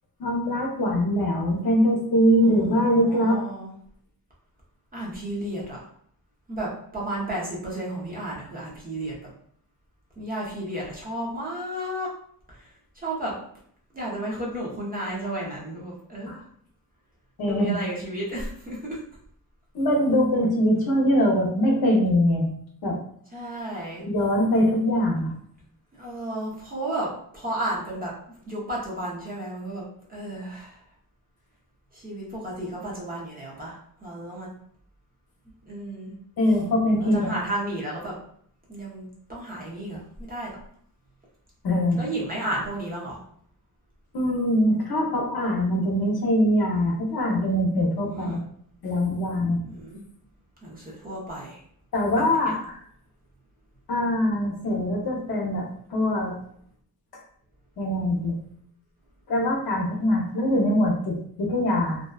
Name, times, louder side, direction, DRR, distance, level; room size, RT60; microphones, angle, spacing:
voice 1, 0.2-3.4 16.3-16.4 17.4-17.8 19.7-22.5 22.8-23.0 24.0-25.3 36.4-37.3 41.6-42.0 44.1-48.4 48.8-49.6 51.9-52.8 53.9-55.7 55.9-56.3 57.8-58.4 59.3-62.0, equal, 70° left, -1 dB, 0.7 m, -23 dB
voice 2, 2.4-3.7 4.9-5.8 6.5-9.1 10.2-12.1 12.5-12.6 13.0-13.3 13.9-16.4 17.4-19.0 23.3-24.0 26.0-28.1 28.5-30.8 31.9-34.5 35.7-36.1 37.0-38.1 38.7-40.6 41.9-43.2 48.1-48.4 49.7-50.0 50.6-51.6 52.1-52.5, right 1 dB, 25° right, -5 dB, 0.7 m, -33 dB
2.6 x 2.2 x 2.2 m, 0.64 s
wide cardioid pair, 155°, 38 cm